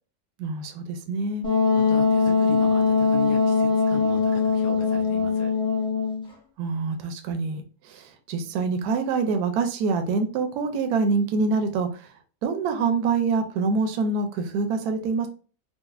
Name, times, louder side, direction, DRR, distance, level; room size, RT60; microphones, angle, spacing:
voice 1, 0.4-1.5 6.6-12.1 12.4-15.3, right 4 dB, 75° right, 6 dB, 1.1 m, -25 dB
Wind instrument woodwind instrument, 1.4-6.3, left 4 dB, 5° left, 0.4 m, -21 dB
voice 2, 1.7-5.5, left 3 dB, 65° left, 1 dB, 1.3 m, -39 dB
3.9 x 2.1 x 2.3 m, 0.37 s
omnidirectional pair, 1.7 m